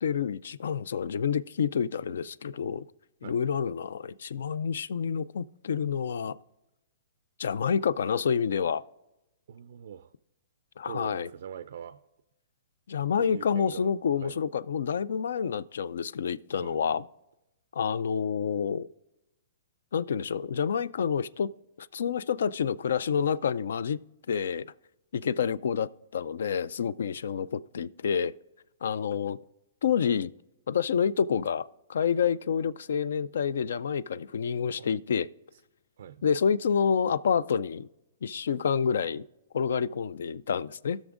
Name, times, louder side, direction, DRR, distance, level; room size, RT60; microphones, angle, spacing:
voice 1, 0.0-2.9 3.2-6.4 7.4-8.8 10.8-11.3 12.9-17.1 17.7-18.9 19.9-24.0 24.3-24.7 25.1-28.3 28.8-29.4 29.8-30.3 30.7-35.3 36.2-37.9 38.2-39.2 39.5-41.0, left 7 dB, 75° left, 0.3 m, -28 dB
voice 2, 9.5-10.1 10.9-12.0 13.2-13.9 14.2-14.4 16.6-16.8 34.8-34.9 36.0-36.3, right 8 dB, 70° right, 0.3 m, -43 dB
16.5 x 6.2 x 2.5 m
hypercardioid pair, 155°, 0 cm